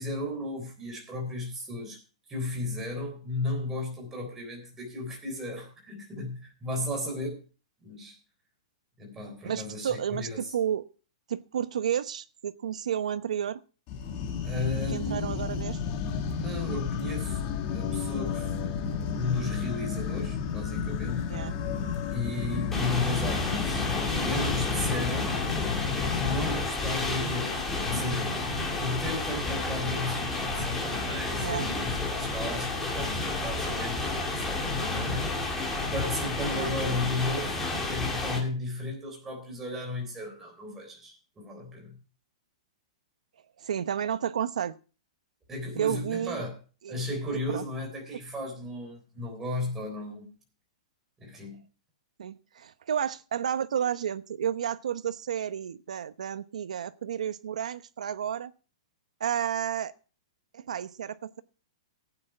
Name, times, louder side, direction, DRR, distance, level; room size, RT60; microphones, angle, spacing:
voice 1, 0.0-2.0 2.3-7.4 7.8-8.2 9.0-10.4 14.4-15.4 16.3-17.4 17.7-21.3 22.1-25.4 26.1-27.6 27.8-28.5 28.8-35.3 35.9-42.0 45.5-46.6 46.9-50.3 51.2-51.6, left 2 dB, 10° right, 1 dB, 3.7 m, -35 dB
voice 2, 9.4-10.8 11.3-13.6 14.9-15.8 21.3-21.5 31.4-31.7 36.5-36.7 43.6-44.7 45.8-46.5 46.8-46.9 47.3-47.6 52.2-58.5 59.2-59.9 60.5-61.4, right 9 dB, 80° right, 13 dB, 0.9 m, -31 dB
sound 1, 13.9-26.6, left 6 dB, 25° left, 1.6 m, -32 dB
sound 2, 22.7-38.4, left 2 dB, 5° left, 2.2 m, -31 dB
15.0 x 9.0 x 4.5 m, 0.37 s
hypercardioid pair, 175°, 4 cm